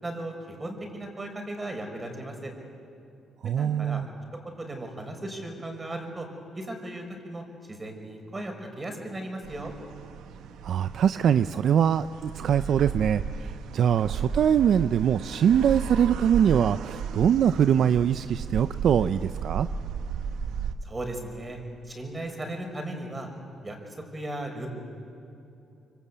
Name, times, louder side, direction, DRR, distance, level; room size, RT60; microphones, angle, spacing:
voice 1, 0.0-2.5 3.4-4.0 4.6-6.3 6.5-9.7 20.8-21.6 21.9-23.3 23.6-24.7, right 1 dB, 20° right, 4 dB, 5.5 m, -36 dB
voice 2, 3.4-4.1 10.6-19.7, right 8 dB, 65° right, 12 dB, 0.6 m, -23 dB
sound 1, 9.4-20.7, right 6 dB, 85° right, 1.3 m, -34 dB
26.0 x 24.5 x 8.5 m, 2.8 s
cardioid pair, 90°, 0 cm